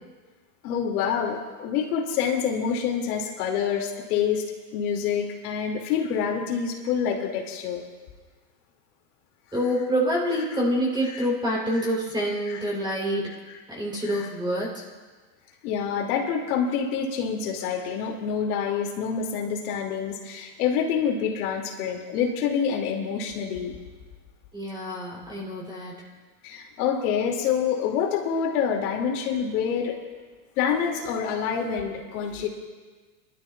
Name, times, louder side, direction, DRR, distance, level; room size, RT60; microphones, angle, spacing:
voice 1, 0.6-4.5 4.7-7.8 11.1-11.3 11.8-11.9 12.5-12.7 14.0-14.3 15.6-23.7 26.4-30.0 30.6-32.5, left 7 dB, 70° left, 0 dB, 2.6 m, -27 dB
voice 2, 9.5-13.3 13.7-14.8 24.5-25.9, equal, 10° right, -5 dB, 3.6 m, -27 dB
22.5 x 12.5 x 2.4 m, 1.4 s
supercardioid pair, 125°, 47 cm